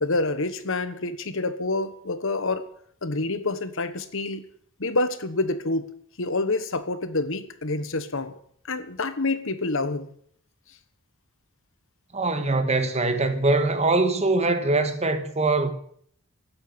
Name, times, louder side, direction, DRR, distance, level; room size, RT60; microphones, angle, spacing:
voice 1, 0.0-2.7 3.0-4.4 4.8-5.9 6.2-8.4 8.7-10.1, left 2 dB, 60° left, 1.4 m, -27 dB
voice 2, 12.1-15.7, right 2 dB, 30° right, 1.7 m, -22 dB
16.0 x 8.7 x 9.8 m
head